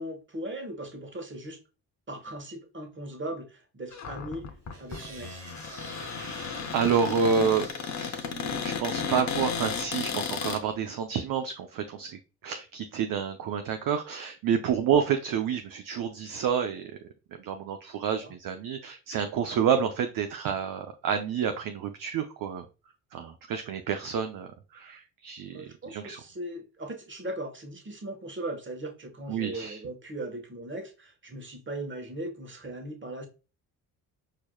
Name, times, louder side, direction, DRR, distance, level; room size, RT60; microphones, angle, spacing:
voice 1, 0.0-1.6 2.1-4.5 4.8-5.4 18.2-18.3 25.5-33.3, right 1 dB, 25° right, 1.1 m, -38 dB
Cupboard open or close, 3.9-10.6, left 6 dB, 35° left, 0.7 m, -34 dB
sound 1, 4.7-10.1, right 3 dB, 90° right, 1.2 m, -48 dB
voice 2, 6.0-7.7 8.0-16.9 17.4-22.6 23.1-26.2 29.3-29.8, right 7 dB, 45° right, 0.5 m, -29 dB
4.6 x 2.9 x 2.2 m
hypercardioid pair, 45°, 48 cm